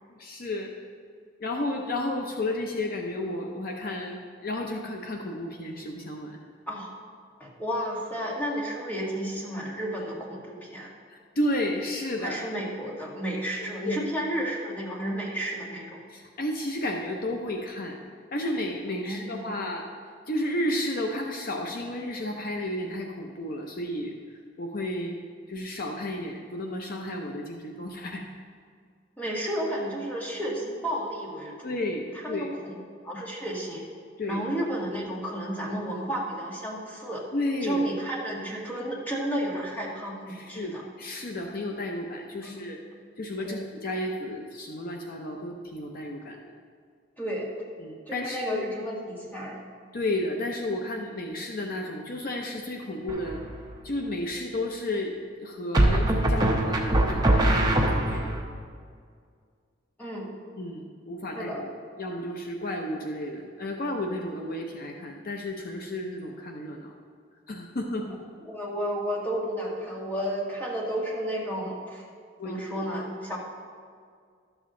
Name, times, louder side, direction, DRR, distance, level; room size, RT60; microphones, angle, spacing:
voice 1, 0.2-0.7 1.4-6.4 11.1-12.5 13.8-14.0 16.1-18.0 18.3-19.8 20.3-24.2 24.6-25.2 25.5-28.2 31.6-32.5 34.2-34.4 37.3-37.8 40.3-42.8 43.2-46.4 47.8-48.7 49.9-53.4 53.8-58.3 60.6-61.5 62.0-66.9 67.5-68.2 72.4-72.8, left 1 dB, 50° left, 2 dB, 0.7 m, -32 dB
voice 2, 7.4-10.9 12.2-16.0 18.9-19.5 29.2-31.8 32.1-32.8 33.0-33.8 34.3-37.2 37.6-40.8 42.4-42.6 43.4-43.6 47.2-47.5 48.1-49.6 60.0-60.3 61.3-61.6 68.4-72.1 72.4-73.4, right 1 dB, 10° left, -4 dB, 1.7 m, -32 dB
sound 1, 53.1-53.6 55.7-58.4, right 1 dB, 20° right, 0.8 m, -22 dB
12.0 x 7.1 x 3.8 m, 2.1 s
head